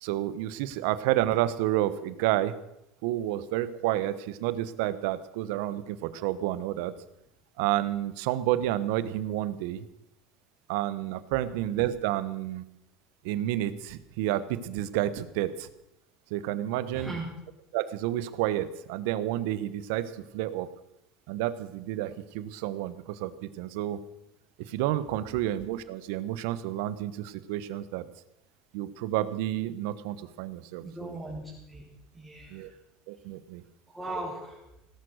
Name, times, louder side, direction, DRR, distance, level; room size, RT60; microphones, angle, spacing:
voice 1, 0.0-2.5 3.0-6.9 7.6-9.8 10.7-12.6 13.2-15.7 16.3-17.1 17.7-20.7 21.3-24.0 24.7-28.1 28.7-31.2 32.5-32.7 33.1-33.6, right 13 dB, 75° right, 15 dB, 1.0 m, -30 dB
voice 2, 16.9-17.3 30.8-31.8 32.1-32.7 33.9-34.6, right 2 dB, ahead, -8 dB, 4.6 m, -38 dB
18.0 x 11.5 x 6.4 m, 0.85 s
supercardioid pair, 125°, 0 cm